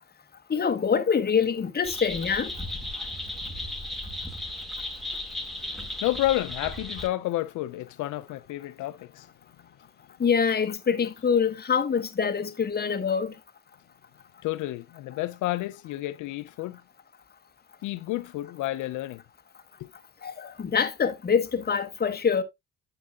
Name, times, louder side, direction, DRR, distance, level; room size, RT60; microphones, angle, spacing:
voice 1, 0.5-2.5 10.2-13.3 20.2-22.4, left 6 dB, 30° left, 1.2 m, -25 dB
sound 1, 1.8-7.1, left 1 dB, ahead, 2.0 m, -35 dB
voice 2, 6.0-9.3 14.4-16.8 17.8-19.2 19.8-19.9, left 16 dB, 85° left, 0.5 m, -30 dB
9.3 x 7.7 x 2.4 m
cardioid pair, 90°, 30 cm